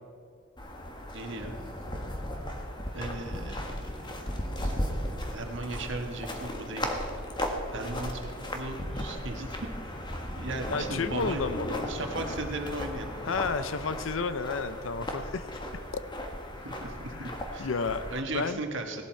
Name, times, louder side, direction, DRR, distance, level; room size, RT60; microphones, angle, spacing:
sound 1, 0.6-18.2, left 1 dB, 20° left, 1.4 m, -36 dB
voice 1, 1.1-1.5 2.9-3.9 4.6-4.7 5.3-7.1 7.7-9.6 10.3-11.6 11.9-13.3 16.6-17.7 18.1-19.0, right 2 dB, 60° right, 4 dB, 1.5 m, -37 dB
voice 2, 10.7-11.8 13.2-15.6 17.1-17.3 17.6-18.0 18.3-18.6, left 4 dB, 70° left, 12 dB, 0.6 m, -31 dB
17.5 x 12.0 x 4.5 m, 2.5 s
head